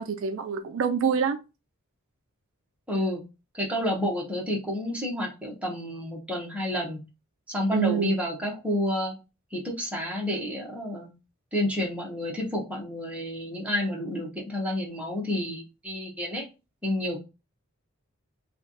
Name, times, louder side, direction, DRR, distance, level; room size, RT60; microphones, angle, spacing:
voice 1, 0.0-1.4 7.7-8.1, right 7 dB, 60° right, 0.3 m, -26 dB
voice 2, 2.9-3.2 3.5-7.0 7.5-9.1 9.5-11.1 11.5-16.4 16.8-17.2, left 1 dB, 5° right, 1.0 m, -30 dB
3.2 x 2.3 x 4.0 m
head